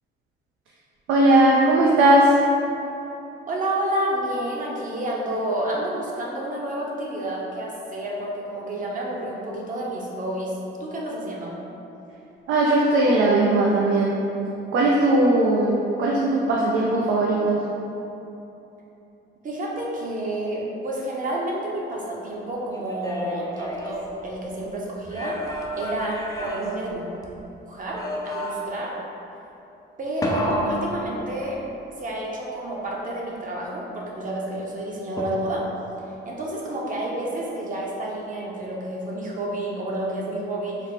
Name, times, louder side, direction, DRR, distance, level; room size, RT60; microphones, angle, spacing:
voice 1, 1.1-2.3 12.5-14.2 14.7-17.6, right 2 dB, 80° right, -3 dB, 0.4 m, -18 dB
voice 2, 3.5-11.6 19.4-25.4 25.7-27.1 27.6-28.9 30.0-31.6 32.0-35.6 36.2-40.8, right 1 dB, 40° right, -3 dB, 0.7 m, -29 dB
sound 1, 22.7-24.6 25.0-27.5 27.9-28.9 30.2-31.8 35.2-35.8, left 1 dB, 20° left, 0.4 m, -32 dB
3.3 x 2.0 x 4.0 m, 3.0 s
cardioid pair, 90°, 20 cm